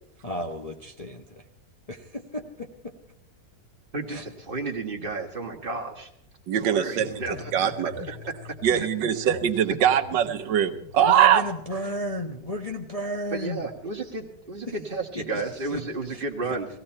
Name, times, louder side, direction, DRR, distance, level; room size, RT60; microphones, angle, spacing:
voice 1, 0.2-1.5 1.9-2.9 4.1-4.2 11.0-13.6 14.7-14.8 15.1-15.8 16.1-16.2 16.5-16.6, equal, 25° left, 1 dB, 0.9 m, -34 dB
voice 2, 3.9-6.1 6.5-7.4 7.6-7.7 8.7-8.9 9.9-10.0 13.3-16.7, right 3 dB, 30° right, 1 dB, 1.6 m, -32 dB
voice 3, 6.5-8.2 8.6-11.4, right 9 dB, 80° right, 9 dB, 1.5 m, -22 dB
sound 1, 7.0-13.0, left 10 dB, 65° left, 1.4 m, -45 dB
18.0 x 16.0 x 4.4 m, 0.74 s
omnidirectional pair, 1.9 m